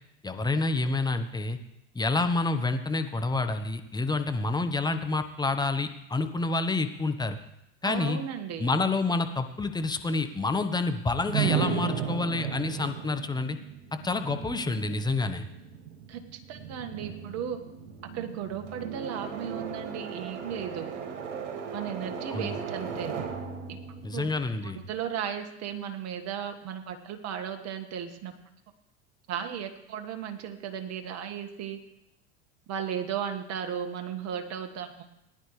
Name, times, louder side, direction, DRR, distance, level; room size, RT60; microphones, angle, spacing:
voice 1, 0.2-1.6 1.9-7.4 7.8-8.2 8.6-13.6 14.0-15.5 22.3-22.6 24.0-24.8, left 3 dB, 10° left, 8 dB, 1.0 m, -28 dB
voice 2, 7.8-8.7 16.1-17.6 18.1-20.9 21.7-23.1 23.7-23.8 24.1-24.3 24.6-28.3 29.3-31.8 32.7-34.9, right 8 dB, 45° right, 6 dB, 1.7 m, -35 dB
sound 1, 11.3-25.1, right 7 dB, 80° right, 2.0 m, -36 dB
19.0 x 10.5 x 3.3 m, 0.85 s
hypercardioid pair, 85°, 35 cm